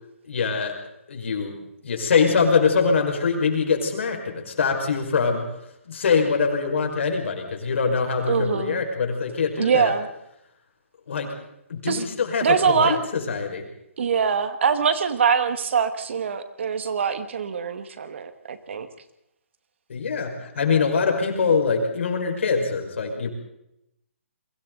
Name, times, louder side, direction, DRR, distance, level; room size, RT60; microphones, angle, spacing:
voice 1, 0.3-0.7 1.1-1.6 1.8-5.5 5.9-9.9 11.1-11.3 11.7-13.6 19.9-23.3, left 5 dB, 60° left, 3 dB, 5.7 m, -23 dB
voice 2, 8.3-8.8 9.6-10.1 11.9-12.0 12.4-13.0 14.0-18.9, right 6 dB, 60° right, 10 dB, 1.9 m, -23 dB
30.0 x 23.0 x 4.1 m, 0.83 s
hypercardioid pair, 150°, 7 cm